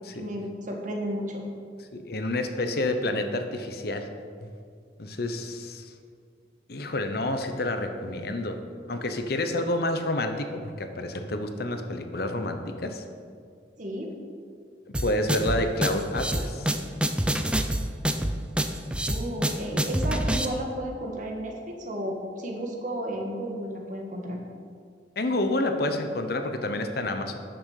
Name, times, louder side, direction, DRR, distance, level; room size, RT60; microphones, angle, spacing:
voice 1, 0.2-1.5 13.8-14.1 19.1-24.4, equal, 45° right, 1 dB, 1.6 m, -33 dB
voice 2, 1.9-4.1 5.0-5.9 6.7-8.6 8.9-13.0 15.0-16.7 25.2-27.4, left 1 dB, 60° left, 7 dB, 0.9 m, -29 dB
sound 1, 14.9-20.4, right 1 dB, 5° right, 0.5 m, -26 dB
10.0 x 6.5 x 6.5 m, 2.2 s
head